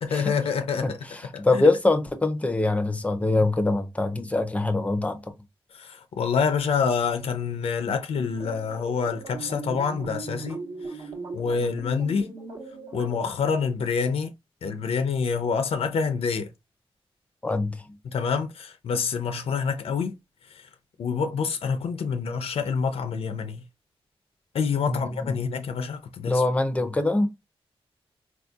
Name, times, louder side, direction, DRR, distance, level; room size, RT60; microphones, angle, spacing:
voice 1, 0.0-1.1 1.3-1.7 5.7-10.6 10.9-12.3 12.9-14.3 14.6-16.5 18.0-20.1 20.5-20.7 21.0-23.6 24.5-26.4, left 5 dB, 80° left, 0.5 m, -27 dB
voice 2, 1.4-5.2 17.4-17.8 24.9-25.4 26.3-27.3, left 2 dB, 15° left, 0.5 m, -24 dB
sound 1, 8.1-13.3, right 3 dB, 60° right, 1.0 m, -38 dB
4.2 x 2.7 x 2.3 m
wide cardioid pair, 155°, 10 cm